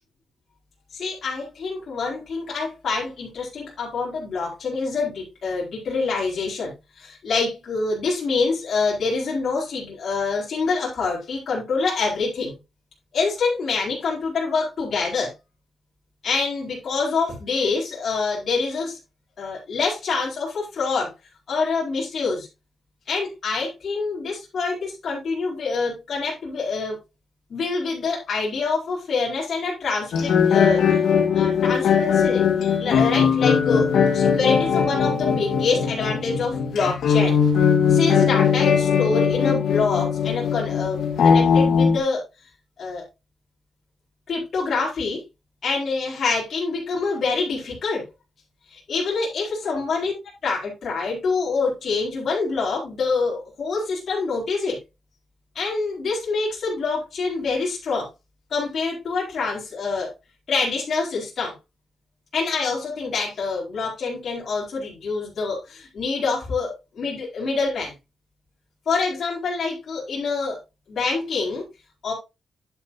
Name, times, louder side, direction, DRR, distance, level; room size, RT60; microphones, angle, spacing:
voice 1, 0.9-12.5 13.1-15.3 16.2-19.0 19.4-21.1 21.5-22.5 23.1-27.0 27.5-31.0 31.3-32.4 32.8-37.4 37.9-42.2 42.8-43.0 44.3-45.2 45.6-48.0 48.7-50.1 50.4-54.8 55.5-58.1 58.5-60.1 60.5-61.5 62.3-67.9 68.9-70.6 70.9-71.7 72.0-72.1, left 4 dB, 50° left, -4 dB, 4.6 m, -26 dB
sound 1, 30.1-42.0, left 7 dB, 80° left, 1.9 m, -19 dB
10.5 x 7.8 x 2.8 m, 0.25 s
wide cardioid pair, 165°, 0 cm